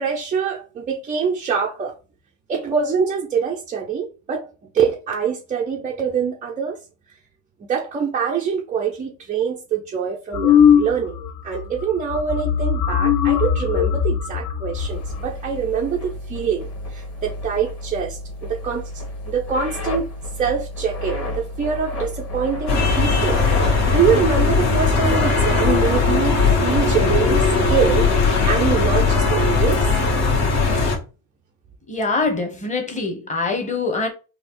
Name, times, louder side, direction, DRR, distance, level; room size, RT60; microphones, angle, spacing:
voice 1, 0.0-1.9 2.5-4.5 4.7-6.8 7.6-18.9 19.3-20.1 20.4-29.9, right 6 dB, 20° right, 0.3 m, -24 dB
sound 1, 10.3-11.3 11.5-11.8 12.1-15.3, left 8 dB, 45° left, 0.5 m, -18 dB
sound 2, 14.7-25.4, left 1 dB, 30° left, 1.4 m, -31 dB
sound 3, 22.7-31.0, left 4 dB, 75° left, 1.7 m, -18 dB
voice 2, 31.9-34.1, left 3 dB, 15° left, 0.9 m, -24 dB
4.2 x 2.5 x 2.9 m
cardioid pair, 115°, 48 cm